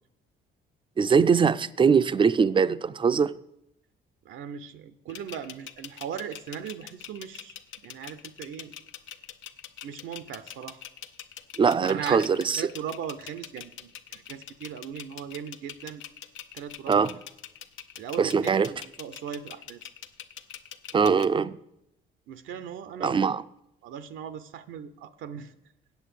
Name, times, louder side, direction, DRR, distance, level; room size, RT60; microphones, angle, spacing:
voice 1, 1.0-3.3 11.6-12.6 16.9-17.2 18.2-18.7 20.9-21.6 23.0-23.4, right 6 dB, 25° right, 0.4 m, -22 dB
voice 2, 4.2-7.5 7.8-8.7 9.8-10.8 11.8-16.0 16.5-17.1 18.0-19.9 22.3-23.2 23.8-25.5, right 8 dB, 80° right, 0.7 m, -38 dB
sound 1, 5.1-21.3, left 10 dB, 80° left, 0.7 m, -43 dB
8.2 x 7.3 x 8.2 m
cardioid pair, 90°, 20 cm